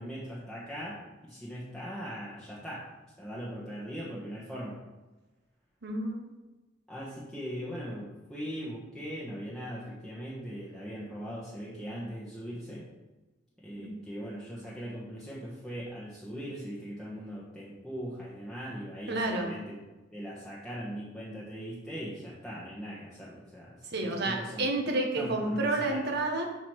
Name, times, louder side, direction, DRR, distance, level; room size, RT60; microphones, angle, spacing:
voice 1, 0.0-2.8 3.2-4.8 6.9-12.9 13.6-19.8 20.1-24.7 25.2-26.0, equal, 5° left, -8 dB, 1.3 m, -40 dB
voice 2, 5.8-6.3 13.8-14.0 19.1-19.5 23.9-26.5, right 2 dB, 60° right, 2 dB, 1.4 m, -30 dB
7.5 x 4.0 x 6.5 m, 1.1 s
head